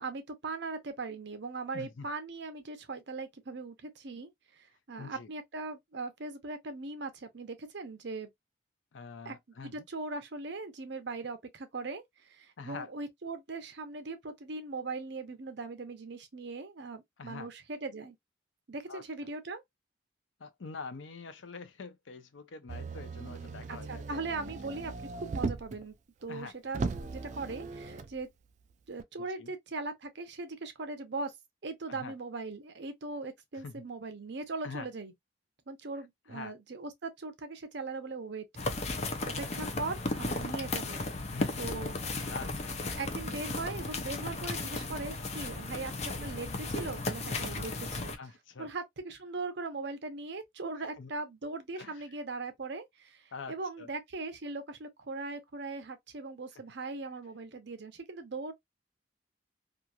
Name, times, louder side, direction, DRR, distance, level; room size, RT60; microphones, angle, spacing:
voice 1, 0.0-8.3 9.2-18.2 18.7-19.6 23.7-26.0 26.2-28.3 28.9-31.3 31.6-35.1 35.7-38.5 38.8-41.1 41.6-42.0 42.9-48.2 48.6-58.5, right 3 dB, 65° right, 0.7 m, -40 dB
voice 2, 1.7-2.1 5.0-5.3 8.9-9.8 12.6-12.9 17.2-17.5 18.9-19.0 20.4-24.3 26.3-26.5 29.4-29.5 31.9-32.2 33.5-33.8 34.6-34.9 36.3-36.5 41.3-41.6 42.3-42.7 48.2-48.7 51.0-51.1 51.8-52.0 53.3-53.9, left 4 dB, 80° left, 0.6 m, -44 dB
Motor vehicle (road), 22.7-25.8 26.3-26.4 26.7-28.1 29.0-29.1, right 4 dB, 40° right, 0.3 m, -38 dB
sound 1, 38.6-48.2, left 2 dB, 35° left, 0.5 m, -35 dB
2.8 x 2.5 x 2.3 m
head